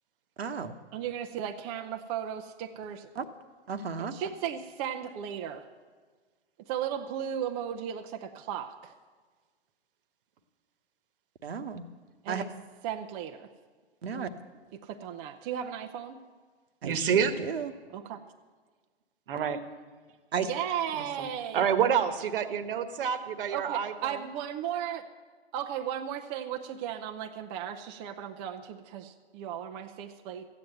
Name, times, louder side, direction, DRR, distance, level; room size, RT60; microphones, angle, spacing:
voice 1, 0.4-0.8 3.1-3.2 3.7-4.2 11.4-11.9 12.3-12.4 14.0-14.3 16.8-17.7 20.3-20.5, right 6 dB, 70° right, 7 dB, 1.1 m, -34 dB
voice 2, 0.9-3.1 4.1-5.7 6.7-8.9 12.2-12.5 12.8-13.5 14.1-14.3 14.7-16.2 17.9-18.2 20.4-21.7 23.5-25.0 25.5-30.5, right 9 dB, 25° right, 4 dB, 0.6 m, -35 dB
voice 3, 16.8-17.3 19.3-19.6 20.9-21.3 21.5-24.2, right 8 dB, 55° right, 11 dB, 1.3 m, -28 dB
13.5 x 9.0 x 7.8 m, 1.5 s
hypercardioid pair, 125°, 32 cm